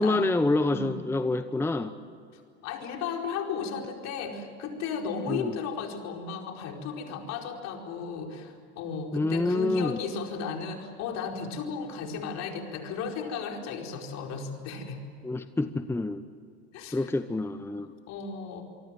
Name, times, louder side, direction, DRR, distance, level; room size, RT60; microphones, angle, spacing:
voice 1, 0.0-1.9 5.3-5.6 9.1-10.0 15.2-16.2 16.9-17.9, left 2 dB, 5° left, 10 dB, 1.0 m, -27 dB
voice 2, 0.6-1.0 2.3-15.0 16.7-17.1 18.1-18.6, left 5 dB, 50° left, 2 dB, 4.7 m, -35 dB
26.0 x 24.0 x 7.8 m, 2.4 s
hypercardioid pair, 85°, 33 cm